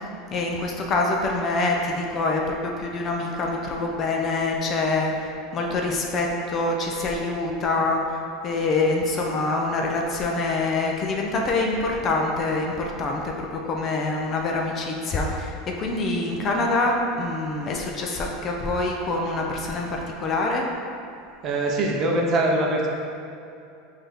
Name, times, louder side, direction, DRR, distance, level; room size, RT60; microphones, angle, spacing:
voice 1, 0.3-8.0 8.4-20.7, left 2 dB, 30° left, 0 dB, 0.5 m, -25 dB
voice 2, 21.4-22.9, right 1 dB, 35° right, -1 dB, 0.6 m, -22 dB
5.6 x 2.7 x 3.5 m, 2.6 s
supercardioid pair, 145°, 0 cm